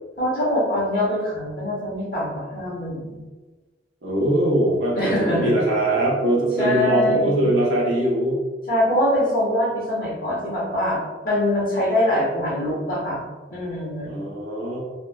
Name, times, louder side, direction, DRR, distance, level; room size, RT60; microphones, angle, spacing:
voice 1, 0.2-3.2 5.0-5.5 6.6-7.4 8.7-11.0 11.2-13.2 13.5-14.1, left 1 dB, 50° left, -8 dB, 1.3 m, -23 dB
voice 2, 4.0-8.3 14.0-14.8, right 1 dB, 85° right, -4 dB, 1.0 m, -21 dB
3.4 x 2.7 x 2.2 m, 1.3 s
head